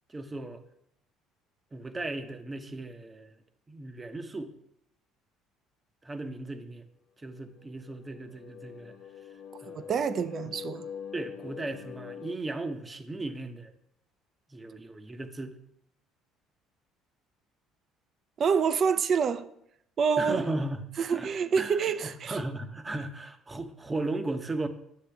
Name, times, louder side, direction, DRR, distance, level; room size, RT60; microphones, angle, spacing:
voice 1, 0.1-0.6 1.7-3.3 3.7-4.5 6.0-6.8 7.2-9.0 9.6-9.9 10.4-10.6 11.1-13.7 14.5-15.6 20.2-21.3 21.5-24.7, right 2 dB, 20° right, 0.8 m, -36 dB
sound 1, 7.4-12.4, left 7 dB, 80° left, 0.8 m, -44 dB
voice 2, 9.7-10.9 18.4-19.5 20.0-20.4 21.0-22.4, right 6 dB, 45° right, 0.5 m, -27 dB
8.4 x 7.5 x 3.4 m
supercardioid pair, 90°, 0 cm